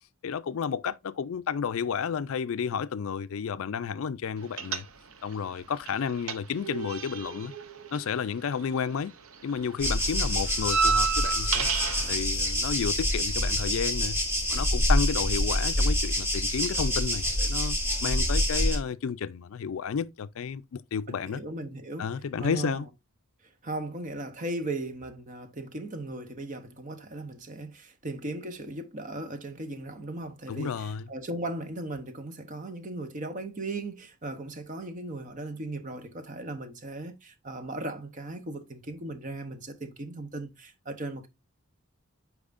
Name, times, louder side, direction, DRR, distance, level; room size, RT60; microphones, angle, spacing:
voice 1, 0.2-4.8 5.2-7.5 7.9-9.1 9.4-11.7 12.1-14.2 14.5-21.4 22.0-22.9 30.5-31.0, left 6 dB, 70° left, 0.4 m, -31 dB
sound 1, 4.6-5.3 5.6-9.0 9.2-12.1, right 6 dB, 75° right, 0.8 m, -30 dB
sound 2, 9.8-18.8, equal, 10° right, 1.3 m, -26 dB
voice 2, 21.1-22.1 22.4-22.8 23.6-41.3, right 2 dB, 35° right, 0.7 m, -37 dB
8.5 x 4.8 x 2.5 m
head